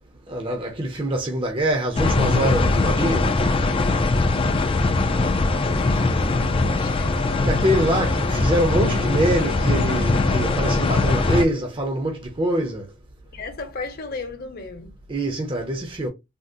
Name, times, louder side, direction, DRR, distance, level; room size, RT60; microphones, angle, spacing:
voice 1, 0.3-3.3 7.4-12.8 15.1-16.1, right 1 dB, 25° right, 0.6 m, -24 dB
sound 1, 2.0-11.4, left 3 dB, 25° left, 0.4 m, -21 dB
sound 2, 4.4-12.4, left 1 dB, 80° right, 1.6 m, -41 dB
voice 2, 5.6-7.2 13.3-15.0, left 3 dB, 50° left, 0.9 m, -35 dB
3.6 x 2.1 x 2.5 m
head